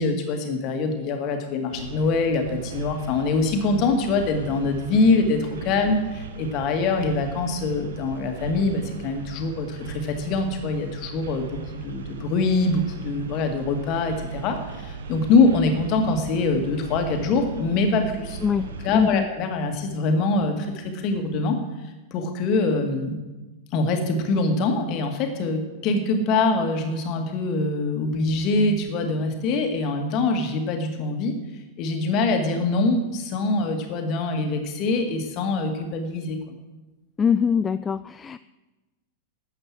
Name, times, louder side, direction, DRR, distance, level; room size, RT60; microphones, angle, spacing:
voice 1, 0.0-18.4 18.8-21.6 22.1-23.2 23.7-31.3 31.8-36.4, left 3 dB, 40° left, 5 dB, 2.0 m, -24 dB
sound 1, 1.7-19.1, right 4 dB, 65° right, 1.2 m, -37 dB
voice 2, 18.4-19.2 37.2-38.4, left 6 dB, 20° left, 14 dB, 0.3 m, -23 dB
12.5 x 8.8 x 6.2 m, 1.1 s
figure-of-eight pair, 90°, 0 cm